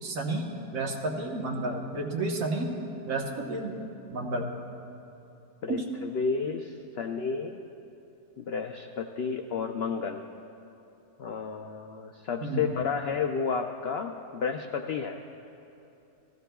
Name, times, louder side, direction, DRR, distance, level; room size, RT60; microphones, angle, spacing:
voice 1, 0.0-2.7 3.1-3.8 4.1-4.5 5.7-5.9 12.4-12.6, right 2 dB, 60° right, 1 dB, 1.4 m, -31 dB
voice 2, 5.6-7.6 8.4-10.2 11.2-15.2, left 5 dB, 85° left, 4 dB, 0.5 m, -31 dB
17.5 x 14.5 x 2.3 m, 2.9 s
omnidirectional pair, 1.6 m